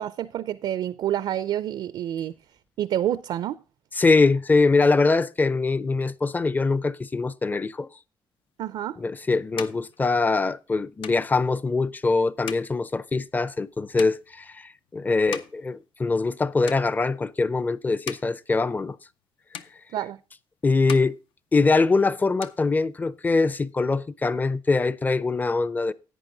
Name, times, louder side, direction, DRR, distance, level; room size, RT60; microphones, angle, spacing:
voice 1, 0.0-2.4 2.8-3.6 8.6-9.0 19.9-20.2, right 11 dB, 70° right, 0.4 m, -28 dB
voice 2, 4.0-7.9 9.0-19.0 20.6-21.2 21.5-25.9, left 3 dB, 20° left, 0.5 m, -23 dB
sound 1, 8.7-16.4 16.6-17.4 17.8-19.3 19.5-20.4 20.7-22.0 22.2-23.3, left 8 dB, 85° left, 0.7 m, -42 dB
11.0 x 8.7 x 3.9 m
cardioid pair, 110°, 9 cm